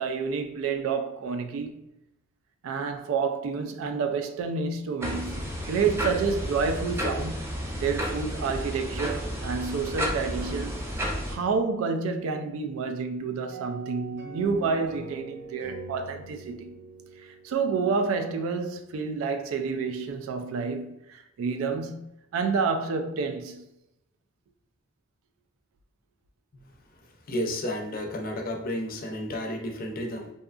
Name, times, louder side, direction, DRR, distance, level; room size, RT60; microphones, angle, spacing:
voice 1, 0.0-1.7 2.6-7.5 7.8-10.8 11.3-16.7 17.2-23.7, right 5 dB, 85° right, 0.3 m, -29 dB
sound 1, 5.0-11.4, equal, 15° right, 0.5 m, -32 dB
sound 2, 13.5-18.1, right 3 dB, 55° right, 0.8 m, -43 dB
voice 2, 27.3-30.3, left 1 dB, 45° left, 0.5 m, -32 dB
2.7 x 2.3 x 2.3 m
head